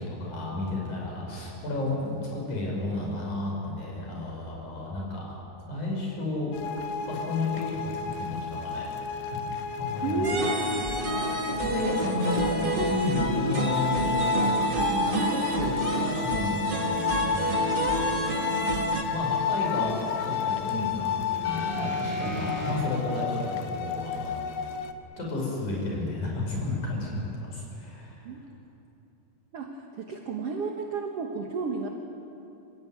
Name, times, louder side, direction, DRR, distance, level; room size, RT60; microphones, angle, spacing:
voice 1, 0.0-5.4 5.7-6.5 7.1-7.7 8.2-9.2 9.8-10.2 11.6-18.2 19.1-19.9 20.2-24.4 25.2-28.3, left 2 dB, 55° left, -2 dB, 7.3 m, -32 dB
sound 1, 6.5-24.9, left 6 dB, 90° left, 2.9 m, -31 dB
voice 2, 10.0-10.5 28.3-28.4 29.5-31.9, right 4 dB, 55° right, 2 dB, 1.8 m, -31 dB
sound 2, 10.2-19.0, right 2 dB, 75° right, 0.4 m, -29 dB
sound 3, 21.4-22.7 23.7-23.8, left 2 dB, 40° left, 4.1 m, -34 dB
26.0 x 16.0 x 9.4 m, 2.9 s
omnidirectional pair, 4.2 m